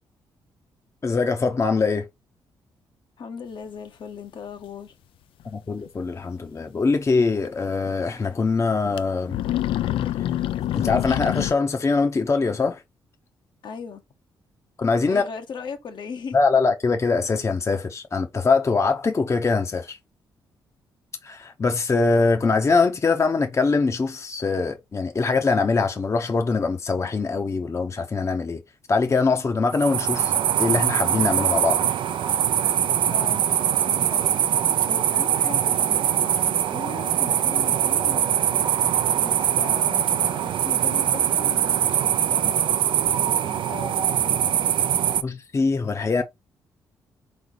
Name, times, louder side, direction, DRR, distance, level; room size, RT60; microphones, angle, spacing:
voice 1, 1.0-2.1 5.4-9.4 10.7-12.8 14.8-15.2 16.3-20.0 21.2-28.6 28.9-30.3 30.6-31.9 45.2-46.2, left 4 dB, 35° left, 0.7 m, -23 dB
voice 2, 3.2-4.9 13.6-14.0 15.1-16.4 33.1-33.5 33.9-34.4 34.9-38.7 39.1-42.8 43.2-44.5, left 6 dB, 60° left, 0.9 m, -38 dB
sound 1, 5.4-5.5 5.8-5.9 7.4-7.5 7.9-8.0 8.8-9.0 9.3-11.5, left 12 dB, 75° left, 0.4 m, -26 dB
sound 2, 29.7-45.2, right 10 dB, 70° right, 0.5 m, -22 dB
3.9 x 3.3 x 3.9 m
supercardioid pair, 70°, 9 cm